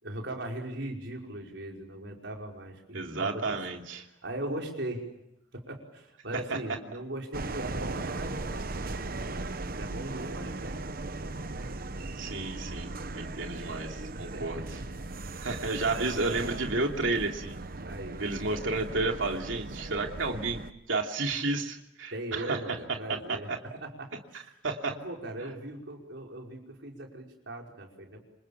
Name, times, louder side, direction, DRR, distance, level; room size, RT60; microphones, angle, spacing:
voice 1, 0.0-3.6 4.0-5.0 5.5-9.4 9.7-10.8 13.3-15.1 15.6-16.9 17.8-18.2 22.1-24.4 24.8-28.2, right 1 dB, 65° right, 1 dB, 5.4 m, -40 dB
voice 2, 2.9-4.0 12.2-14.7 15.4-17.6 18.2-20.6 20.9-22.6 23.5-23.6 24.6-24.9, right 3 dB, 80° right, 2 dB, 2.9 m, -31 dB
sound 1, 7.3-20.7, right 2 dB, 50° right, 1.0 m, -38 dB
27.5 x 26.5 x 7.3 m, 0.80 s
head